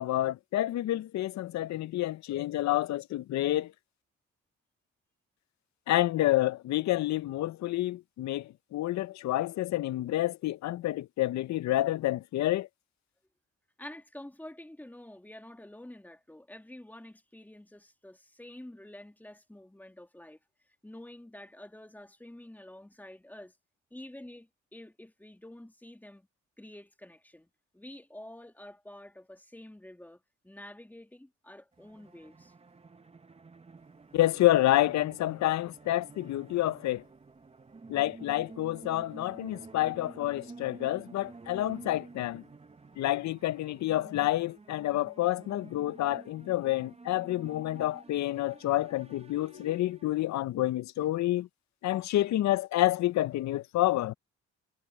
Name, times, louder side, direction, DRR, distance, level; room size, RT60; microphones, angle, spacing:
voice 1, 0.0-3.7 5.9-12.7 34.1-37.0 37.9-42.4 43.0-51.5 51.8-54.1, left 15 dB, 65° left, 0.6 m, -28 dB
voice 2, 13.8-20.4 20.8-23.5 23.9-26.3 26.6-27.5 27.7-32.5, left 1 dB, 5° left, 2.1 m, -48 dB
sound 1, 31.7-50.5, right 3 dB, 20° right, 1.0 m, -51 dB
cardioid pair, 90°, 30 cm